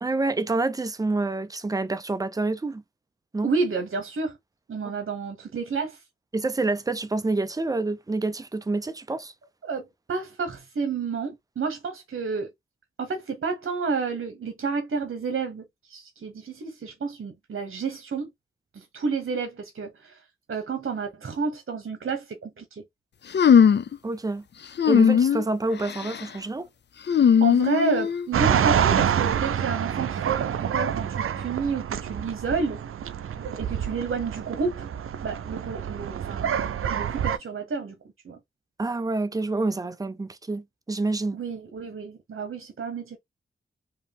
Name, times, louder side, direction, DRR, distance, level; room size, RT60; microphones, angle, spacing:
voice 1, 0.0-2.8 3.3-3.5 6.3-9.3 24.0-24.4 24.9-26.7 38.8-41.4, right 2 dB, 15° right, 0.5 m, -27 dB
voice 2, 3.4-4.4 4.7-6.0 9.6-12.5 13.0-18.3 18.7-20.2 20.5-22.8 27.4-32.8 33.6-34.9 35.2-36.6 36.8-37.9 38.2-38.4 41.3-43.2, right 4 dB, 65° right, 1.1 m, -30 dB
sound 1, 23.3-24.0 24.8-25.4 25.8-26.2 27.1-28.3, left 7 dB, 55° left, 0.5 m, -19 dB
sound 2, 28.3-37.4, right 8 dB, 85° right, 0.5 m, -27 dB
4.8 x 3.0 x 3.4 m
wide cardioid pair, 110°, 21 cm